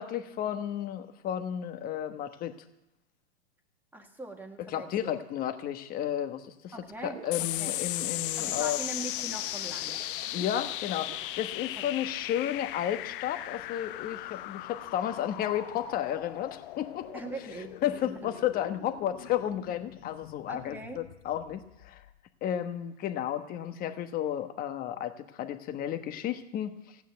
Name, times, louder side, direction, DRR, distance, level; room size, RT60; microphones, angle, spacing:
voice 1, 0.0-2.5 4.7-6.7 7.0-8.8 10.3-17.1 17.8-22.0 22.4-27.0, left 10 dB, 25° left, 9 dB, 1.1 m, -33 dB
voice 2, 3.9-5.1 6.7-7.8 8.4-10.2 11.8-11.9 17.1-18.3 20.5-21.0, right 2 dB, 5° right, 4 dB, 1.6 m, -42 dB
sound 1, 6.7-12.2, right 7 dB, 80° right, 2.4 m, -49 dB
sound 2, 7.3-22.1, left 16 dB, 50° left, 0.5 m, -37 dB
15.0 x 9.4 x 9.2 m, 0.89 s
hypercardioid pair, 135°, 34 cm